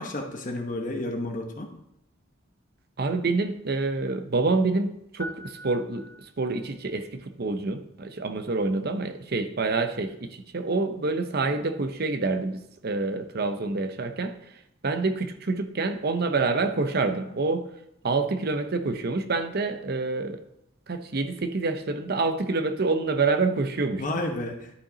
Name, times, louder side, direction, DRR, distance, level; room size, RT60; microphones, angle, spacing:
voice 1, 0.0-1.7 24.0-24.7, left 1 dB, 40° left, 3 dB, 0.9 m, -31 dB
voice 2, 3.0-6.1 6.4-14.4 14.8-17.7 18.0-20.4 20.9-24.2, right 3 dB, 50° right, 8 dB, 0.7 m, -27 dB
sound 1, 5.2-6.7, equal, 15° left, 0.5 m, -42 dB
11.5 x 5.9 x 3.9 m, 0.80 s
head